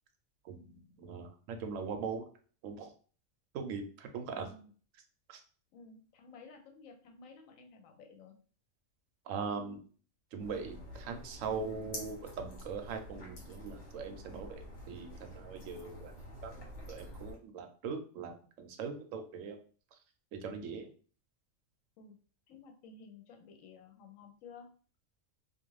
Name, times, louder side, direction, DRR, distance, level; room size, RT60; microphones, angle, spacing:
voice 1, 0.4-2.3 2.6-2.9 3.5-4.5 5.3-5.4 9.3-9.9 10.3-16.1 16.4-16.5 16.9-19.6 20.3-20.9, right 5 dB, 75° right, 6 dB, 0.9 m, -41 dB
voice 2, 5.7-8.4 15.8-16.1 17.1-17.2 22.0-22.2 22.5-24.7, left 4 dB, 80° left, 3 dB, 1.0 m, -54 dB
sound 1, 10.4-17.4, equal, 65° left, 1.3 m, -48 dB
2.4 x 2.4 x 3.1 m, 0.42 s
omnidirectional pair, 1.4 m